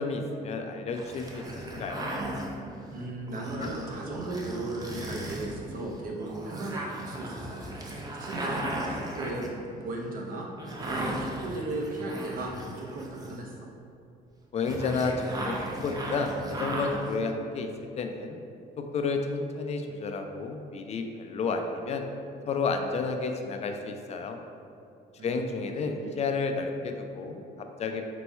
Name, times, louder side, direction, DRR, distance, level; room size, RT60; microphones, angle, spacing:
voice 1, 0.0-2.1 3.6-3.7 14.5-18.4 18.8-22.0 22.5-24.4 25.2-28.0, left 4 dB, 40° left, 5 dB, 0.4 m, -31 dB
sound 1, 0.9-13.6 14.6-17.1, right 1 dB, 20° right, 0.6 m, -36 dB
voice 2, 2.9-7.6 8.2-9.5 9.8-10.5 10.8-13.7 25.2-25.4 26.0-26.1, right 2 dB, 60° right, 0 dB, 0.7 m, -36 dB
4.2 x 2.2 x 4.3 m, 2.6 s
cardioid pair, 110°, 17 cm